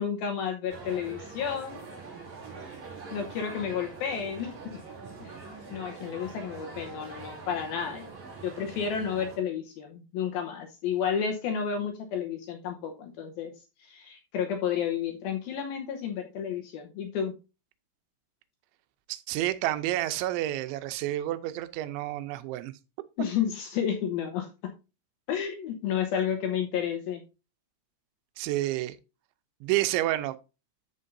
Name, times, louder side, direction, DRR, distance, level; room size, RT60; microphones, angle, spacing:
voice 1, 0.0-1.8 3.1-4.5 5.2-5.4 5.7-8.1 8.4-13.5 13.8-17.3 23.2-24.5 25.3-27.2, left 8 dB, 75° left, 2.4 m, -31 dB
sound 1, 0.7-9.4, right 4 dB, 45° right, 4.1 m, -43 dB
voice 2, 19.1-22.7 28.4-29.0 29.6-30.4, right 15 dB, 90° right, 3.0 m, -29 dB
13.5 x 5.2 x 2.6 m
omnidirectional pair, 5.2 m